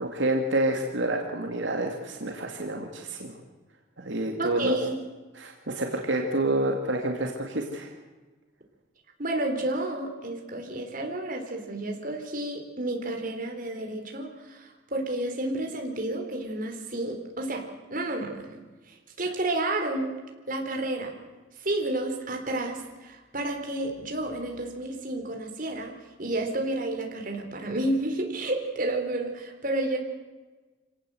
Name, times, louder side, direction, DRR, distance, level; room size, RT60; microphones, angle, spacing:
voice 1, 0.0-3.4 4.0-4.7 5.3-7.9, right 1 dB, 70° right, 2 dB, 2.4 m, -28 dB
voice 2, 4.4-4.9 9.2-17.6 17.9-18.6 18.9-20.2 20.5-21.2 21.6-25.9 26.2-30.0, right 2 dB, 45° right, 2 dB, 4.0 m, -31 dB
26.5 x 17.5 x 7.8 m, 1.3 s
head